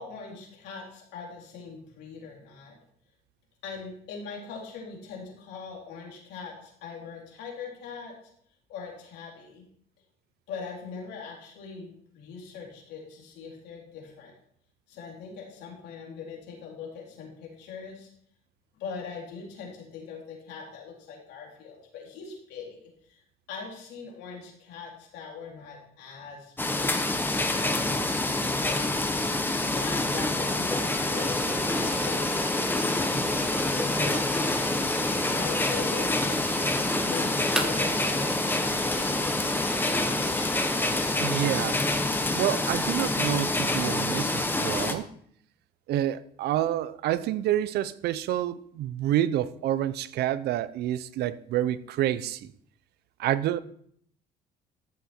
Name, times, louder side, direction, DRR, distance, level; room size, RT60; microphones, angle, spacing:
voice 1, 0.0-2.7 3.6-8.1 8.7-9.7 10.5-14.3 14.9-18.1 18.8-22.8 23.1-23.2 23.5-27.1 27.5-29.0 29.7-34.7 35.2-36.6 37.0-39.2, left 5 dB, 85° left, 4.0 m, -41 dB
sound 1, 26.6-44.9, left 2 dB, 10° left, 1.1 m, -27 dB
sound 2, 31.1-41.4, right 1 dB, 5° right, 1.4 m, -35 dB
voice 2, 41.2-41.8 42.3-45.1 45.9-52.5 53.2-53.6, right 12 dB, 75° right, 0.7 m, -28 dB
13.5 x 7.2 x 4.5 m
cardioid pair, 110°, 17 cm